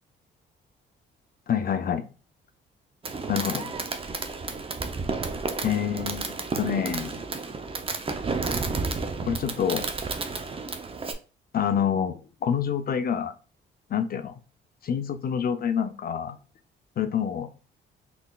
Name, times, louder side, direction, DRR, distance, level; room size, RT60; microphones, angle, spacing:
voice 1, 1.5-2.0 3.3-3.7 5.6-7.2 9.2-9.8 11.5-13.3 13.9-14.4 14.8-16.4 17.0-17.5, left 8 dB, 50° left, 0.6 m, -27 dB
Fireworks, 3.0-11.1, right 4 dB, 30° right, 0.6 m, -31 dB
3.9 x 3.4 x 2.3 m
cardioid pair, 90°, 20 cm